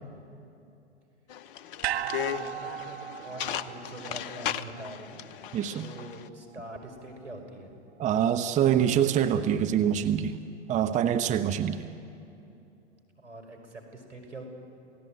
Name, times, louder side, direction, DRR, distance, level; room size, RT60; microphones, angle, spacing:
sound 1, 1.3-6.3, left 10 dB, 50° left, 0.9 m, -36 dB
sound 2, 1.8-6.2 6.5-6.6, right 11 dB, 65° right, 1.4 m, -37 dB
voice 1, 1.9-5.3 5.8-7.8 13.2-14.4, right 2 dB, 90° right, 3 dB, 5.4 m, -44 dB
voice 2, 5.5-5.9 8.0-10.4 10.7-11.8, right 9 dB, 20° right, 8 dB, 0.9 m, -25 dB
28.0 x 17.5 x 9.1 m, 2.7 s
figure-of-eight pair, 105°, 35 cm